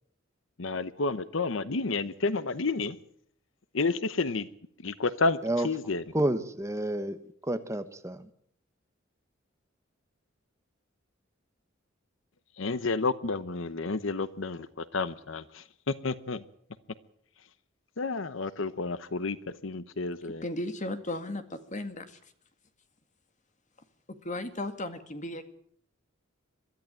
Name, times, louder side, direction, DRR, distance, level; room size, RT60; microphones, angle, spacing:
voice 1, 0.6-3.0 3.7-4.5 4.8-6.0 12.6-15.6 16.0-16.4 18.0-20.4, left 3 dB, 70° left, 15 dB, 0.9 m, -30 dB
voice 2, 6.1-7.2 7.5-8.3, right 1 dB, 15° right, 10 dB, 1.1 m, -29 dB
voice 3, 20.4-22.2 24.1-25.5, left 1 dB, 40° left, 9 dB, 2.0 m, -35 dB
22.5 x 13.5 x 9.2 m, 0.66 s
head